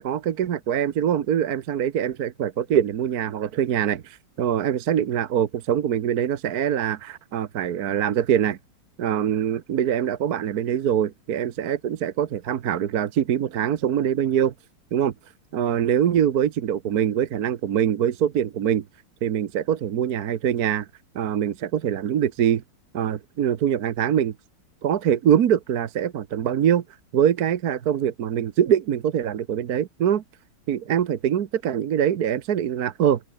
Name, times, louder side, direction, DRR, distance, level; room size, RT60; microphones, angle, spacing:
voice 1, 0.0-8.6 9.0-14.5 14.9-15.1 15.5-18.8 19.2-20.9 21.1-22.6 22.9-24.3 24.8-26.8 27.1-30.2 30.7-33.2, right 9 dB, 55° right, 1.2 m, -23 dB
open air
omnidirectional pair, 2.4 m